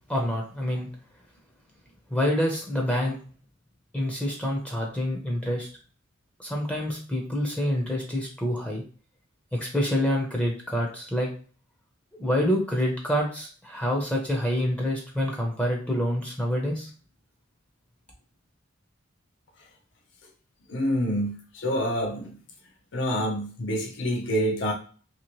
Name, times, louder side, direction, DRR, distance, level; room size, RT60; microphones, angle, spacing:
voice 1, 0.1-0.9 2.1-3.2 3.9-5.7 6.4-8.8 9.5-11.3 12.2-16.9, equal, 5° left, -1 dB, 0.6 m, -27 dB
voice 2, 20.7-22.4 22.9-24.7, equal, 65° left, 1 dB, 0.7 m, -27 dB
2.9 x 2.9 x 3.0 m, 0.39 s
head